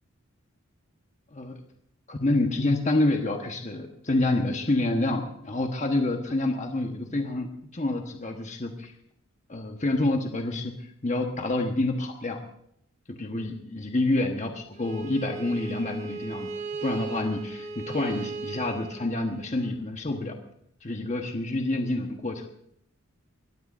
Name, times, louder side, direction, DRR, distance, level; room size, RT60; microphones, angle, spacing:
voice 1, 2.1-7.5 7.7-8.9 9.5-10.7 11.0-12.4 13.2-16.5 16.8-20.3 20.8-22.4, left 2 dB, 35° left, 4 dB, 1.2 m, -27 dB
Bowed string instrument, 14.7-19.7, right 4 dB, 35° right, 1.4 m, -37 dB
21.5 x 15.5 x 2.6 m, 0.70 s
head